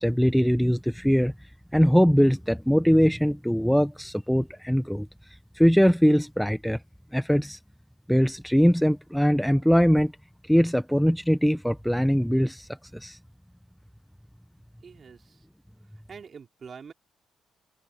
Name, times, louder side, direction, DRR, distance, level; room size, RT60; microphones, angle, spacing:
voice 1, 0.0-1.3 1.7-5.1 5.5-6.8 7.1-7.6 8.1-10.1 10.5-13.2, equal, ahead, 0.8 m, -21 dB
voice 2, 14.8-15.5 16.1-16.9, right 6 dB, 45° right, 4.4 m, -45 dB
cardioid pair, 90°, 0 cm